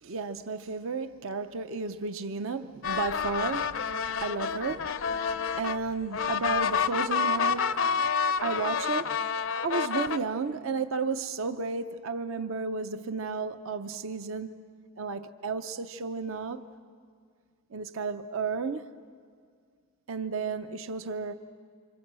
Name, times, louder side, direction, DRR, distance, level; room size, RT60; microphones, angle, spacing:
voice 1, 0.0-3.8 4.2-5.0 5.6-7.8 8.4-14.6 15.0-16.7 17.7-18.9 20.1-21.3, right 4 dB, 65° right, 0.6 m, -33 dB
sound 1, 2.8-10.2, left 6 dB, 60° left, 0.6 m, -29 dB
28.0 x 26.0 x 7.5 m
head